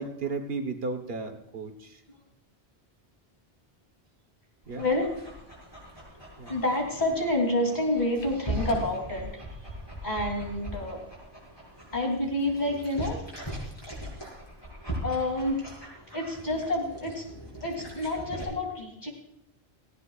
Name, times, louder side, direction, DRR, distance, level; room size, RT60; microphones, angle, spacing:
voice 1, 0.0-2.0 4.7-4.9 6.4-6.5, right 4 dB, 70° right, 6 dB, 1.5 m, -34 dB
Dog, 4.6-18.4, right 1 dB, 25° left, 5.7 m, -40 dB
voice 2, 4.7-5.2 6.5-9.4 10.0-11.0 11.9-13.2 15.0-15.7 16.1-17.3 17.6-19.1, left 1 dB, 45° left, 0 dB, 3.3 m, -28 dB
18.5 x 16.0 x 2.4 m, 0.78 s
omnidirectional pair, 1.1 m